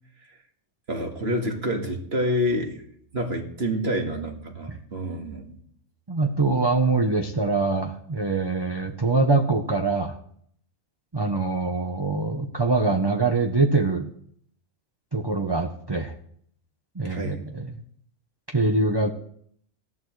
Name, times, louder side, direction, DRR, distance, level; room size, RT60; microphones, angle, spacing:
voice 1, 0.9-2.7 3.1-5.6 17.0-17.4, equal, 50° right, 2 dB, 2.2 m, -28 dB
voice 2, 6.1-10.2 11.1-14.1 15.1-16.1 16.9-17.8 18.5-19.1, right 3 dB, 25° right, 4 dB, 0.7 m, -24 dB
18.0 x 14.0 x 3.2 m, 0.66 s
omnidirectional pair, 1.3 m